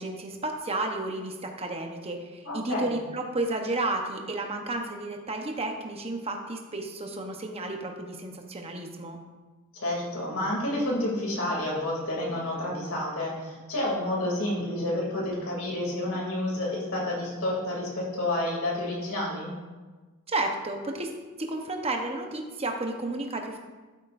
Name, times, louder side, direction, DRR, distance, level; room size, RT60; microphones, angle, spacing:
voice 1, 0.0-9.2 20.3-21.1 21.4-23.6, right 2 dB, 25° right, 3 dB, 1.0 m, -32 dB
voice 2, 2.4-2.9 9.7-19.5, left 1 dB, 65° left, -3 dB, 2.8 m, -29 dB
12.0 x 8.8 x 2.6 m, 1.3 s
head